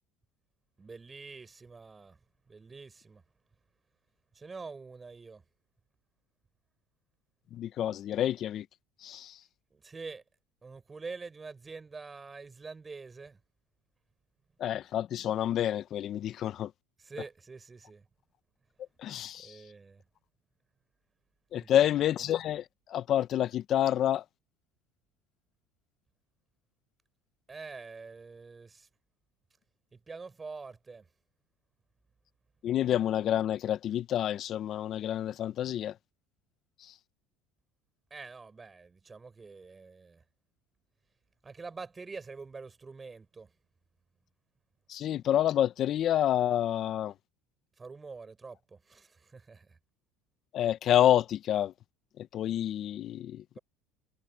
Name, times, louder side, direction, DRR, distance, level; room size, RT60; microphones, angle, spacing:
voice 1, 0.8-2.2 2.5-3.2 4.3-5.4 9.7-10.2 10.6-13.4 17.0-18.1 19.3-20.0 21.5-21.8 27.5-28.9 29.9-31.1 38.1-40.2 41.4-43.5 47.8-49.8 53.5-53.6, right 4 dB, 20° right, 5.8 m, -46 dB
voice 2, 7.5-8.7 9.0-9.4 14.6-16.7 19.0-19.5 21.5-24.2 32.6-35.9 44.9-47.1 50.5-51.7 52.2-53.6, left 11 dB, 50° left, 1.0 m, -28 dB
supercardioid pair, 100°, 0 cm